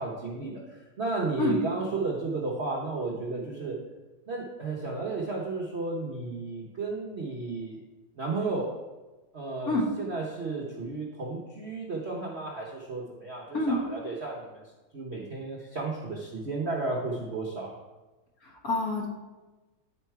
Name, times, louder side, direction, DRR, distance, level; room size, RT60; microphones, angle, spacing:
voice 1, 0.0-3.8 4.3-7.8 8.1-8.7 9.3-14.6 14.9-17.7, right 3 dB, 50° right, -3 dB, 0.8 m, -33 dB
voice 2, 18.4-19.1, left 2 dB, 50° left, -1 dB, 1.5 m, -27 dB
9.6 x 4.5 x 4.6 m, 1.2 s
omnidirectional pair, 2.2 m